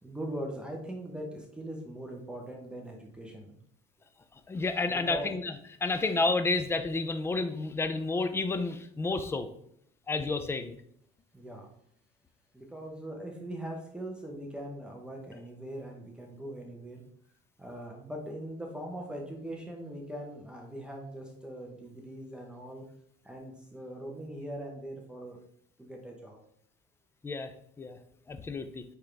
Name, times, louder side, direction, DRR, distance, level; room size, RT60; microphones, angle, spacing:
voice 1, 0.0-3.5 4.9-5.3 11.3-11.7 12.5-17.0 17.6-22.8 23.2-25.4 25.8-26.4, right 1 dB, 5° right, 0 dB, 0.9 m, -41 dB
voice 2, 4.5-5.5 5.8-9.5 10.1-10.8 27.2-28.0 28.3-28.8, left 3 dB, 15° left, 9 dB, 0.5 m, -30 dB
8.7 x 3.6 x 3.3 m, 0.69 s
cardioid pair, 150°, 18 cm